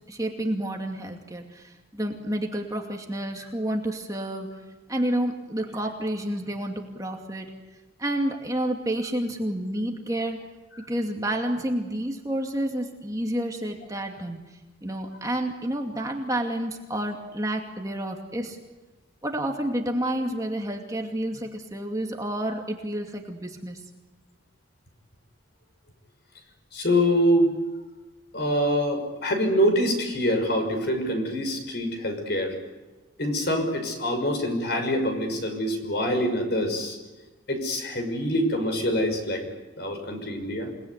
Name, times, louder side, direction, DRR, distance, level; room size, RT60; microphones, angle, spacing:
voice 1, 0.1-4.5 4.9-7.5 8.0-10.4 10.9-14.4 14.8-18.6 19.2-23.8, right 1 dB, 15° right, 2 dB, 2.4 m, -29 dB
voice 2, 26.7-27.5 28.3-32.6 33.2-37.0 37.5-39.5 39.8-40.7, equal, 55° left, 5 dB, 6.0 m, -25 dB
28.5 x 20.0 x 9.7 m, 1.2 s
head